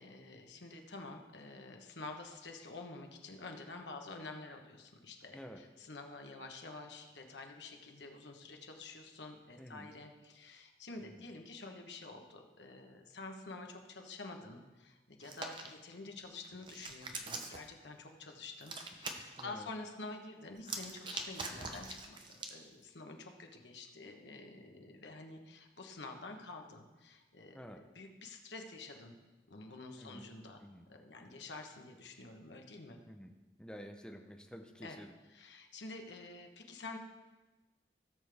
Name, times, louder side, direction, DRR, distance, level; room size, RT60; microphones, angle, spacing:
voice 1, 0.0-27.6 27.9-29.1 29.5-30.6 30.9-33.0 34.8-35.0 35.3-37.0, left 3 dB, 85° left, 4 dB, 1.2 m, -49 dB
voice 2, 9.6-9.9 11.0-11.3 19.4-19.7 27.5-27.8 30.0-30.3 30.6-30.9 33.1-35.1, equal, 5° left, 4 dB, 0.7 m, -50 dB
Hands, 15.2-15.7 16.4-17.7 18.6-19.4 20.6-22.6, right 3 dB, 25° right, 0.8 m, -43 dB
17.0 x 6.8 x 3.5 m, 1.2 s
head